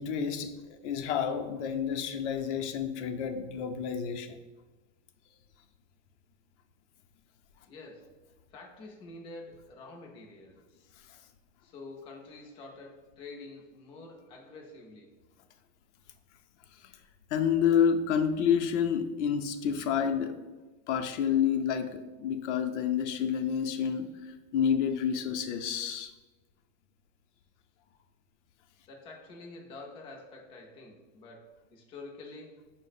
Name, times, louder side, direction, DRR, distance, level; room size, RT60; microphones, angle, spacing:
voice 1, 0.0-4.4 16.8-16.9 17.3-20.4 20.9-26.1, left 8 dB, 80° left, 0.5 m, -29 dB
voice 2, 7.7-8.1 8.5-10.6 11.6-15.1 28.9-32.7, left 3 dB, 15° left, 0.3 m, -47 dB
4.6 x 2.0 x 4.0 m
supercardioid pair, 155°, 35 cm